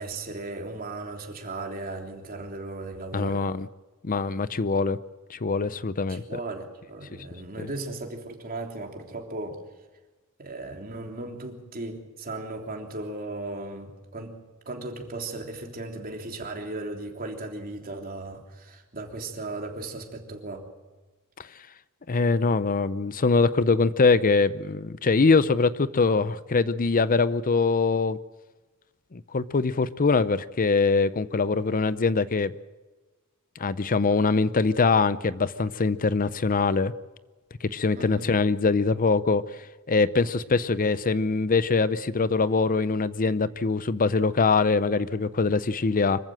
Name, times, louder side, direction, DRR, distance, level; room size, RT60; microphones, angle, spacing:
voice 1, 0.0-3.4 6.1-9.6 10.4-14.4 14.6-20.7 38.0-38.3, right 2 dB, 40° right, 2 dB, 3.3 m, -36 dB
voice 2, 3.1-3.7 4.0-5.0 5.3-6.2 7.6-7.7 21.4-21.5 22.1-28.2 29.1-32.5 33.6-36.9 37.6-39.4 39.9-46.2, left 4 dB, 40° left, 15 dB, 0.6 m, -23 dB
25.0 x 15.0 x 7.8 m, 1.2 s
head